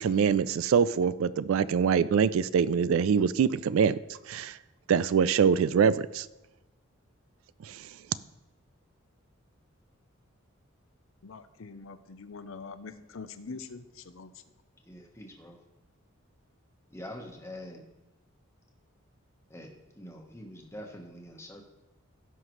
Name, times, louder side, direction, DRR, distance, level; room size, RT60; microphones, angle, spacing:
voice 1, 0.0-4.0 4.3-4.6 4.9-6.3 7.6-7.9, right 6 dB, 70° right, 17 dB, 0.3 m, -24 dB
voice 2, 11.2-14.4, left 4 dB, 70° left, 11 dB, 0.6 m, -44 dB
voice 3, 14.9-15.6 16.9-17.8 19.5-19.7 20.0-21.6, left 1 dB, 10° left, 2 dB, 1.1 m, -44 dB
16.5 x 5.7 x 3.1 m, 1.1 s
head